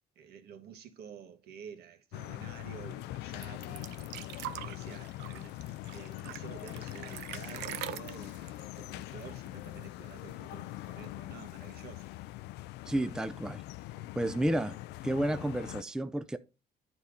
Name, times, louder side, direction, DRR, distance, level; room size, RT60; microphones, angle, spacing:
voice 1, 0.1-4.2 4.5-12.1 13.9-14.1, right 7 dB, 70° right, 1.7 m, -50 dB
sound 1, 2.1-15.8, left 17 dB, 80° left, 0.4 m, -43 dB
sound 2, 3.4-9.8 10.1-10.2 10.5-11.2 12.0-12.1, right 13 dB, 85° right, 0.7 m, -44 dB
voice 2, 12.9-13.6 14.2-14.8 15.0-16.4, right 1 dB, 5° right, 0.5 m, -31 dB
9.5 x 4.3 x 5.2 m
cardioid pair, 110°, 17 cm